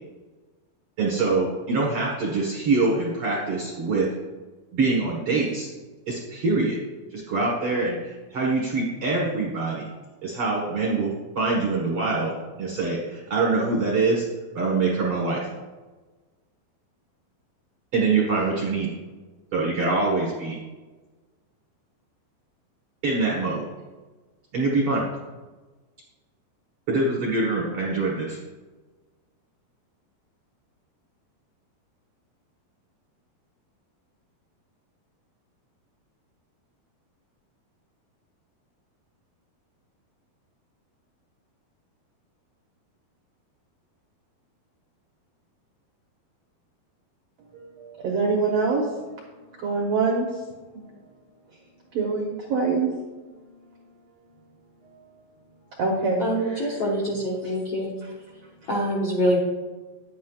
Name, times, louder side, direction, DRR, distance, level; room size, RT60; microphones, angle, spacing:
voice 1, 1.0-4.1 4.7-5.7 6.1-6.8 7.1-9.9 10.2-11.1 11.3-14.3 14.5-15.5 17.9-18.9 19.5-20.6 23.0-23.7 24.5-25.0 26.9-28.4, right 3 dB, 65° right, -3 dB, 1.4 m, -24 dB
voice 2, 47.5-48.9 49.6-50.4 50.7-50.8 51.9-52.9 54.8-55.2 55.8-56.8 57.4-57.5, right 4 dB, 85° right, -1 dB, 1.4 m, -25 dB
voice 3, 56.2-57.9 58.7-59.4, equal, 75° left, -3 dB, 1.4 m, -25 dB
10.0 x 9.4 x 2.4 m, 1.3 s
omnidirectional pair, 4.4 m